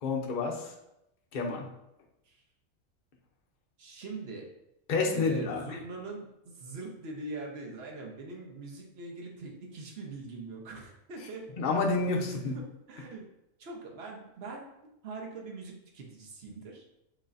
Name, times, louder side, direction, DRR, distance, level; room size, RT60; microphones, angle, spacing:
voice 1, 0.0-0.7 1.3-1.7 4.9-5.8 11.6-12.6, left 3 dB, 45° left, 1 dB, 0.7 m, -29 dB
voice 2, 3.8-4.4 5.1-11.5 12.2-13.2 13.6-16.8, right 3 dB, 50° right, 0 dB, 1.0 m, -43 dB
6.4 x 3.2 x 2.6 m, 0.85 s
omnidirectional pair, 1.6 m